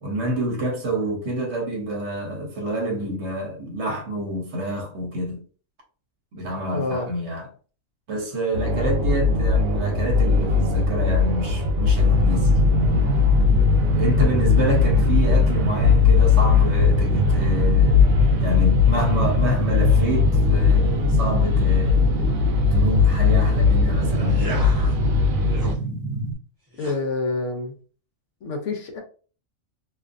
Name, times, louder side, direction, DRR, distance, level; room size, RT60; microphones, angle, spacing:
voice 1, 0.0-5.4 6.3-7.5 8.1-12.6 13.9-18.1 18.4-22.3 22.7-24.7, right 1 dB, 60° right, 1.0 m, -28 dB
voice 2, 6.7-7.1 26.8-27.7 28.4-29.0, left 3 dB, 70° left, 0.9 m, -27 dB
sound 1, 8.5-25.7, left 5 dB, 90° right, 1.0 m, -19 dB
sound 2, 12.1-26.3, right 2 dB, 30° left, 1.0 m, -27 dB
sound 3, 24.1-25.0 25.4-25.8 26.7-27.0, right 1 dB, 20° right, 0.7 m, -36 dB
2.5 x 2.4 x 2.4 m
omnidirectional pair, 1.4 m